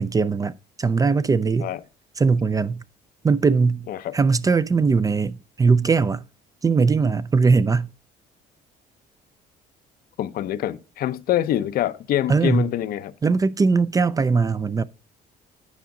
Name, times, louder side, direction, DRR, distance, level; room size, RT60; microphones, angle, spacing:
voice 1, 0.0-1.7 2.2-2.8 3.2-3.9 4.1-6.2 6.6-7.9 12.3-12.7 13.2-14.8, right 4 dB, 20° right, 0.4 m, -20 dB
voice 2, 10.2-13.1, left 12 dB, 60° left, 0.6 m, -25 dB
9.5 x 5.1 x 3.7 m
cardioid pair, 110°, 17 cm